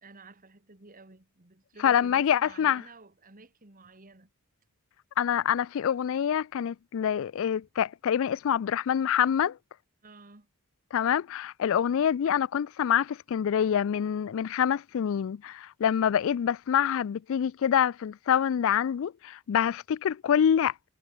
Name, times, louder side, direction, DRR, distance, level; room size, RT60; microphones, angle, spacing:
voice 1, 0.0-4.3 10.0-10.5, right 3 dB, 40° right, 2.1 m, -52 dB
voice 2, 1.8-2.8 5.2-9.6 10.9-20.7, left 9 dB, 65° left, 0.3 m, -26 dB
head